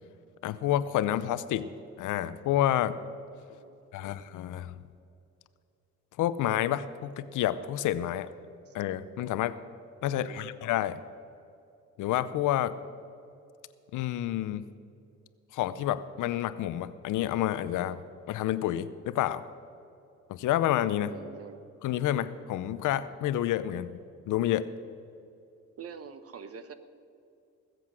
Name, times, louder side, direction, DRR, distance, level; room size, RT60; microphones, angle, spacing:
voice 1, 0.4-1.7 2.0-3.0 3.9-4.8 6.2-8.3 8.7-9.6 10.0-11.0 12.0-12.7 13.9-14.7 15.5-18.0 18.3-19.4 20.3-21.1 21.8-24.0 24.3-24.7, left 12 dB, 85° left, 15 dB, 0.7 m, -29 dB
voice 2, 3.5-4.2 8.7-8.8 10.1-10.5 21.1-21.6 25.8-26.7, right 6 dB, 50° right, 11 dB, 1.1 m, -46 dB
20.0 x 7.9 x 6.2 m, 2.6 s
cardioid pair, 90°, 30 cm